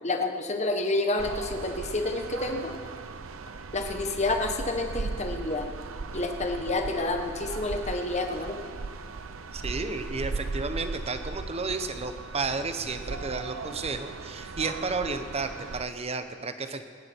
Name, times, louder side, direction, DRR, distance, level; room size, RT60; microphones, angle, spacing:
voice 1, 0.0-2.7 3.7-5.7 6.1-8.6, left 2 dB, 35° left, 5 dB, 1.4 m, -29 dB
sound 1, 1.2-15.9, right 3 dB, 85° right, 0.7 m, -38 dB
voice 2, 9.5-16.9, right 3 dB, 30° right, 9 dB, 0.9 m, -32 dB
26.0 x 9.8 x 4.6 m, 2.3 s
head